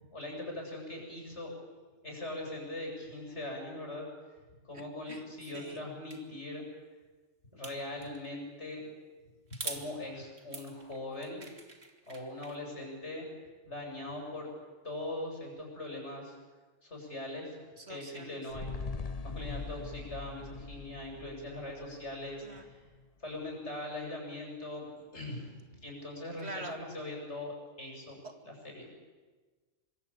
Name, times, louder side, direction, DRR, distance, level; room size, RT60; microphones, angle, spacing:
voice 1, 0.1-1.5 2.0-4.1 4.6-6.6 7.5-8.9 9.6-11.5 12.1-13.3 13.6-14.5 14.8-16.3 16.8-17.6 17.9-18.7 19.2-22.8 23.2-27.5 27.8-28.2 28.4-28.9, left 1 dB, 60° left, 0 dB, 8.2 m, -41 dB
sound 1, 6.1-6.2 7.6-8.3 9.5-9.8 10.4-12.6, right 3 dB, 70° right, 3.2 m, -43 dB
voice 2, 17.8-18.4 22.4-22.6 26.4-26.8, right 2 dB, 55° right, 5 dB, 2.6 m, -44 dB
sound 2, 18.5-23.0 23.4-23.5, left 4 dB, 35° left, 0.9 m, -42 dB
26.0 x 24.0 x 8.9 m, 1.3 s
omnidirectional pair, 1.3 m